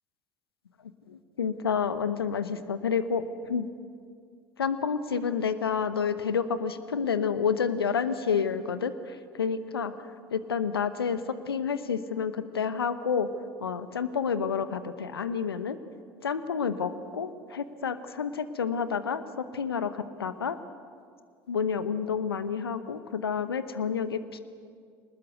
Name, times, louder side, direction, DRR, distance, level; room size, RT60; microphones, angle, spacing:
voice 1, 1.1-3.7 4.6-9.9 10.3-11.2 11.5-13.3 13.6-15.8 16.2-20.6 21.5-24.4, left 6 dB, 85° left, 13 dB, 0.9 m, -29 dB
23.5 x 20.0 x 8.1 m, 2.2 s
figure-of-eight pair, 65°, 12 cm